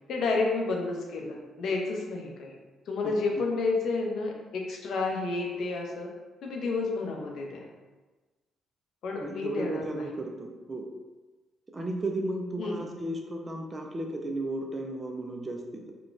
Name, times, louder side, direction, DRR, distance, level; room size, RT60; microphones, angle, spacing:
voice 1, 0.1-2.5 2.9-6.1 6.4-7.7 9.0-10.0 12.6-12.8, left 3 dB, 70° left, 0 dB, 0.6 m, -30 dB
voice 2, 9.2-10.9 11.7-15.9, right 1 dB, 25° right, 1 dB, 0.4 m, -34 dB
3.7 x 2.3 x 2.4 m, 1.2 s
cardioid pair, 90°, 0 cm